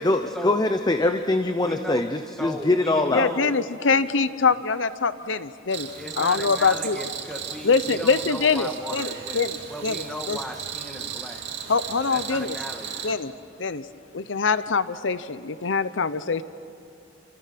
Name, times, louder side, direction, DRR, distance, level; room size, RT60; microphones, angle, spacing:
voice 1, 0.0-3.3, left 2 dB, 20° left, 7 dB, 0.8 m, -23 dB
voice 2, 1.6-3.5 5.9-11.4 12.1-13.2, equal, ahead, 3 dB, 2.0 m, -36 dB
voice 3, 3.1-5.9 6.2-7.0 7.6-9.5 9.8-10.4 11.7-12.6 13.0-13.3 13.6-13.9 14.1-16.4, left 5 dB, 75° left, 14 dB, 0.8 m, -24 dB
Cricket, 5.7-13.1, right 8 dB, 65° right, 2.6 m, -35 dB
29.5 x 27.5 x 6.0 m, 2.8 s
head